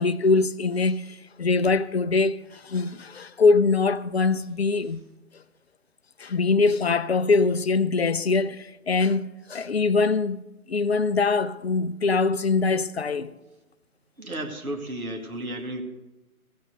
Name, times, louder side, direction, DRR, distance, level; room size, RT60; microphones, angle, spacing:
voice 1, 0.0-5.0 6.2-10.4 10.7-13.3, left 4 dB, 45° left, 0.5 m, -23 dB
voice 2, 14.2-15.8, right 1 dB, 75° right, 2.1 m, -33 dB
15.0 x 6.2 x 7.6 m
figure-of-eight pair, 145°, 44 cm